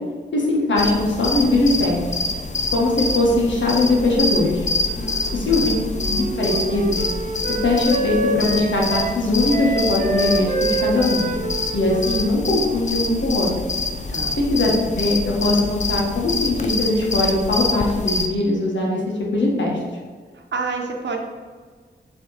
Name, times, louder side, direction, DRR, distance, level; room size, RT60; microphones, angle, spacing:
voice 1, 0.3-2.0 2.7-4.7 5.3-5.7 6.0-7.0 7.5-10.5 10.8-11.2 11.7-13.5 14.5-19.0 19.3-19.8, left 2 dB, 85° left, -2 dB, 1.4 m, -20 dB
sound 1, 0.8-18.3, left 3 dB, 40° left, 0.5 m, -26 dB
voice 2, 4.9-5.8 14.1-14.4 20.3-21.2, right 4 dB, 75° right, 2 dB, 0.9 m, -30 dB
Wind instrument woodwind instrument, 5.5-13.5, right 3 dB, 45° right, 0.6 m, -27 dB
6.7 x 3.4 x 4.1 m, 1.5 s
wide cardioid pair, 120°, 19 cm